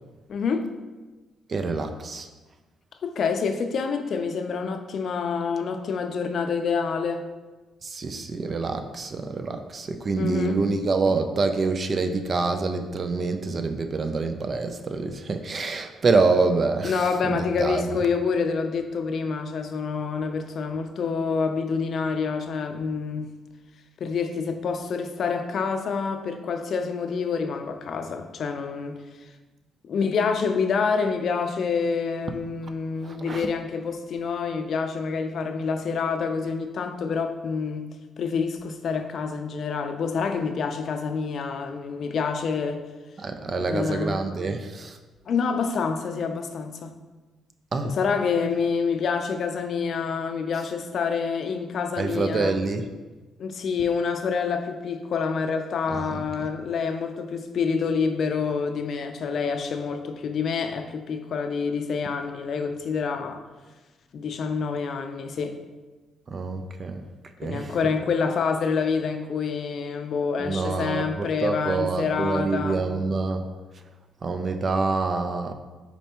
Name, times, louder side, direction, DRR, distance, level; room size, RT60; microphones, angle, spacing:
voice 1, 0.3-0.7 3.0-7.2 10.2-10.6 16.8-23.3 24.0-29.0 29.8-37.9 38.2-42.9 43.5-44.2 45.3-46.9 47.8-52.6 53.4-63.4 64.1-65.6 67.4-72.8, left 5 dB, 60° left, 7 dB, 0.4 m, -27 dB
voice 2, 1.5-2.3 7.8-17.9 33.0-33.5 43.2-45.0 47.7-48.0 52.0-52.8 55.9-56.5 66.3-67.0 67.4-67.8 70.4-73.5 74.2-75.5, right 3 dB, 40° right, 8 dB, 0.4 m, -26 dB
4.4 x 4.2 x 2.8 m, 1.2 s
cardioid pair, 90°, 0 cm